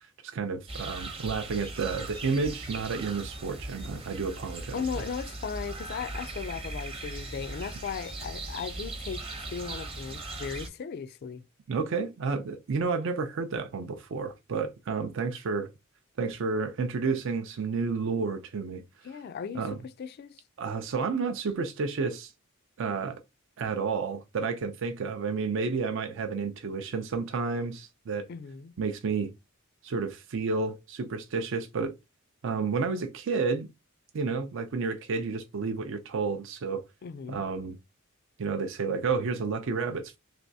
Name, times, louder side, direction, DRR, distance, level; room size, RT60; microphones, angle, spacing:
voice 1, 0.2-4.8 11.7-15.7 16.2-18.8 19.5-19.8 20.6-22.3 22.8-23.2 23.6-28.3 28.8-29.3 29.8-31.9 32.4-33.7 34.1-36.8 37.3-37.8 38.4-40.2, right 4 dB, 60° right, 0.4 m, -31 dB
sound 1, 0.7-10.7, right 2 dB, 25° right, 0.7 m, -39 dB
voice 2, 4.7-9.2 9.5-11.4 19.0-20.4 28.3-28.7 37.0-37.5, left 6 dB, 50° left, 0.3 m, -37 dB
3.3 x 3.0 x 2.6 m
head